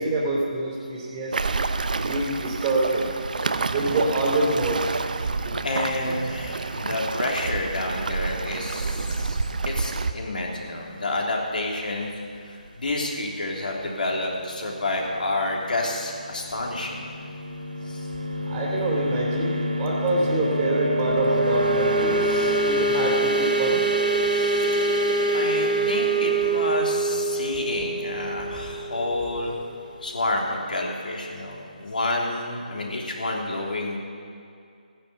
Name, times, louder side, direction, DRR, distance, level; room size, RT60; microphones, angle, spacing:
voice 1, 0.0-1.4 2.0-3.1 3.7-4.8 5.4-5.5 18.5-23.8, right 2 dB, 20° right, -4 dB, 2.9 m, -26 dB
Waves surf, 1.3-10.1, right 3 dB, 65° right, 0.9 m, -28 dB
voice 2, 5.6-12.1 12.4-17.0 17.8-18.1 22.2-22.6 24.3-24.8 25.3-29.6 30.0-34.0, left 2 dB, 70° left, -1 dB, 3.4 m, -29 dB
sound 1, 17.1-29.6, right 2 dB, 85° right, 3.1 m, -25 dB
16.0 x 10.0 x 7.0 m, 2.3 s
figure-of-eight pair, 155°, 5 cm